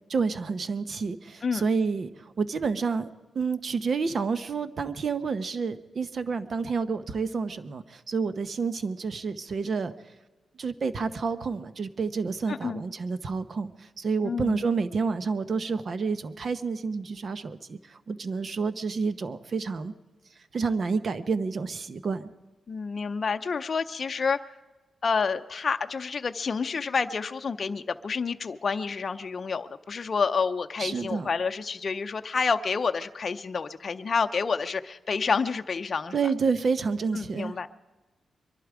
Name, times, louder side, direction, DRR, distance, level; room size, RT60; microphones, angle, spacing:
voice 1, 0.1-3.1 3.3-9.9 10.6-19.9 20.5-22.3 30.8-31.3 36.1-37.6, right 5 dB, 50° right, 12 dB, 0.9 m, -29 dB
voice 2, 12.5-12.8 14.2-14.6 22.7-24.4 25.0-36.2 37.1-37.7, left 5 dB, 45° left, 7 dB, 0.6 m, -29 dB
23.5 x 11.5 x 4.9 m, 1.2 s
cardioid pair, 95°, 0 cm